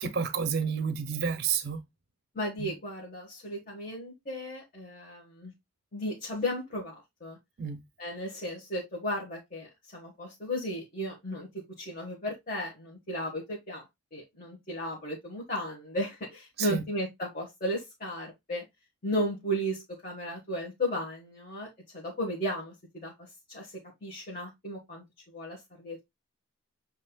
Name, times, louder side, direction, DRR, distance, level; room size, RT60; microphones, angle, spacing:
voice 1, 0.0-1.8 2.6-2.7 7.6-7.8 16.6-16.8, right 6 dB, 50° right, 0.5 m, -30 dB
voice 2, 2.3-5.5 5.9-7.4 8.0-13.9 14.1-18.7 19.0-26.0, equal, 40° left, 1.4 m, -35 dB
7.5 x 2.8 x 2.3 m
head